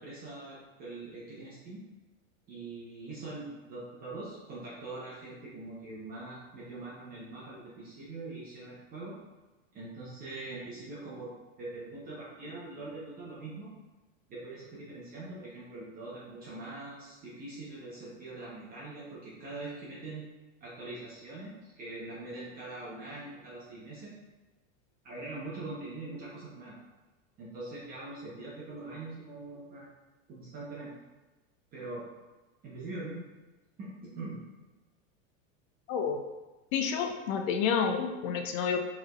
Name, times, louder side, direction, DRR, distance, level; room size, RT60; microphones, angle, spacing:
voice 1, 0.0-1.8 2.5-9.1 9.7-13.7 14.3-20.3 20.6-24.1 25.0-26.8 27.4-29.9 30.3-30.9 31.7-32.0 32.6-33.3 33.8-34.4, right 2 dB, 25° right, -7 dB, 0.7 m, -43 dB
voice 2, 35.9-36.2 36.7-38.8, left 6 dB, 75° left, 4 dB, 0.6 m, -29 dB
4.7 x 3.3 x 2.3 m, 1.2 s
supercardioid pair, 155°, 39 cm